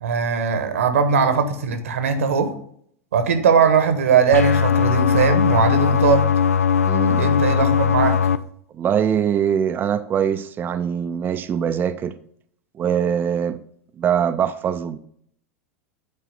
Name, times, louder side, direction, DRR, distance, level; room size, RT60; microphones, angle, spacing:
voice 1, 0.0-2.5 3.1-6.2 7.1-8.2, right 6 dB, 70° right, 8 dB, 1.3 m, -19 dB
sound 1, 4.3-8.4, left 7 dB, 75° left, 0.5 m, -19 dB
voice 2, 6.9-7.3 8.7-12.2 12.8-13.6 14.0-15.0, right 8 dB, 25° right, 10 dB, 0.5 m, -22 dB
8.4 x 4.7 x 5.4 m, 0.65 s
figure-of-eight pair, 90°, 8 cm